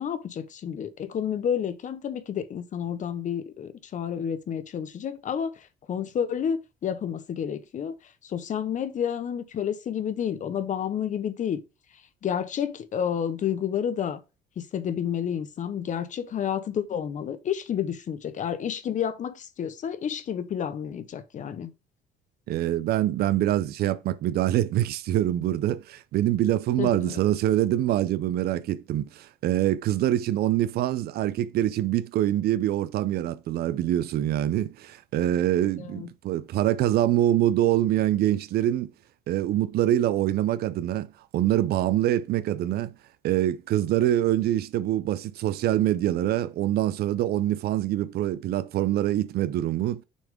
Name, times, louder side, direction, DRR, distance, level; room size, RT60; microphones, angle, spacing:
voice 1, 0.0-5.5 5.9-8.0 8.2-11.6 12.2-14.2 14.6-21.7 26.8-27.2 35.8-36.1, left 8 dB, 50° left, 0.9 m, -30 dB
voice 2, 22.5-38.9 39.3-41.1 41.3-42.9 43.2-50.0, right 13 dB, 70° right, 0.6 m, -25 dB
6.4 x 3.6 x 5.0 m
cardioid pair, 110°, 17 cm